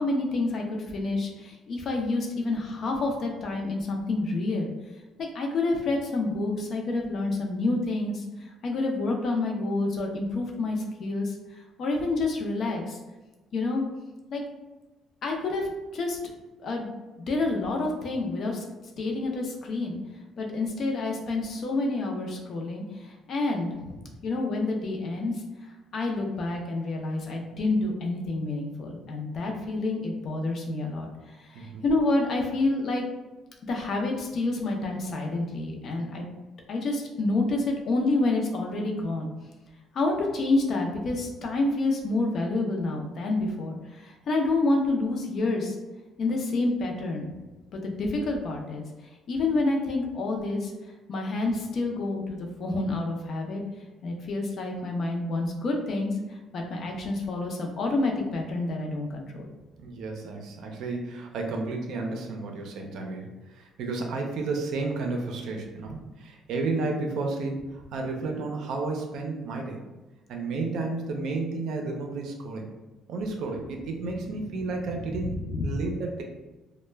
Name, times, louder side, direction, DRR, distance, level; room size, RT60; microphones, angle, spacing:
voice 1, 0.0-4.7 5.2-8.2 8.6-11.4 11.8-13.0 13.5-13.8 14.3-14.4 15.2-16.2 16.6-16.9 17.1-18.7 19.0-20.0 20.4-25.3 25.9-31.1 31.4-33.0 33.7-36.3 36.7-39.3 39.9-45.8 46.2-47.3 47.7-48.8 49.3-50.7 51.1-53.6 54.0-59.5 75.0-75.6, left 2 dB, 50° left, 1 dB, 0.5 m, -28 dB
voice 2, 59.8-69.9 70.3-72.7 73.1-76.2, right 3 dB, 70° right, 2 dB, 0.5 m, -32 dB
2.2 x 2.1 x 3.2 m, 1.1 s
cardioid pair, 130°, 0 cm